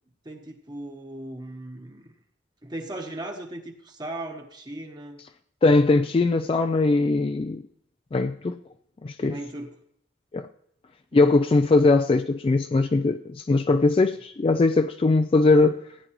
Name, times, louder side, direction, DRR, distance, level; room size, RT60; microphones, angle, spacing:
voice 1, 0.2-2.2 2.6-5.2 9.2-9.7 11.1-11.4, right 1 dB, 25° right, 1.0 m, -37 dB
voice 2, 5.6-7.6 8.1-8.5 9.0-9.4 10.3-10.5 11.1-15.8, left 3 dB, 30° left, 0.3 m, -20 dB
15.5 x 9.2 x 3.0 m
head